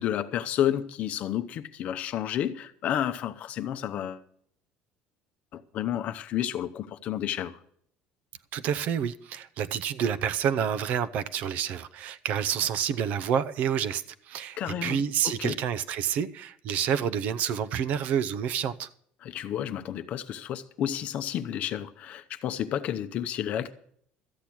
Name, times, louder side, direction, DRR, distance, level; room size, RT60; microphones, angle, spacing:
voice 1, 0.0-4.2 5.5-7.6 14.6-15.6 19.2-23.7, left 10 dB, 40° left, 0.7 m, -31 dB
voice 2, 8.5-18.9, right 8 dB, 50° right, 0.6 m, -28 dB
13.5 x 8.7 x 6.1 m
cardioid pair, 175°, 3 cm